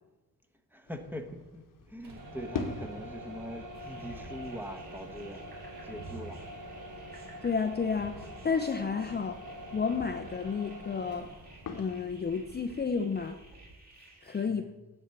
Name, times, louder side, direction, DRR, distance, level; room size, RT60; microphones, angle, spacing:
voice 1, 0.7-1.6 1.9-5.4 5.8-6.4 14.5-14.8, equal, 5° right, 5 dB, 1.0 m, -42 dB
sound 1, 0.8-12.9, left 5 dB, 55° left, 1.1 m, -47 dB
sound 2, 1.9-13.8, right 1 dB, 55° right, 1.5 m, -45 dB
sound 3, 3.7-14.4, right 2 dB, 25° right, 3.0 m, -56 dB
voice 2, 7.4-9.4 9.7-11.3 11.7-13.4 14.2-14.6, left 5 dB, 25° left, 6 dB, 0.5 m, -31 dB
9.9 x 4.5 x 7.0 m, 1.1 s
cardioid pair, 90°, 38 cm